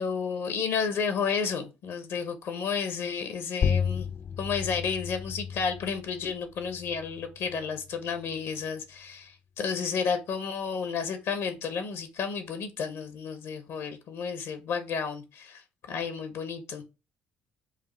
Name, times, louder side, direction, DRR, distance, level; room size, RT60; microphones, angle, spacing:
voice 1, 0.0-4.1 4.4-16.8, left 6 dB, 65° left, 0.8 m, -32 dB
sound 1, 3.6-8.7, left 7 dB, 45° left, 0.3 m, -33 dB
4.9 x 2.4 x 3.1 m
hypercardioid pair, 55°, 5 cm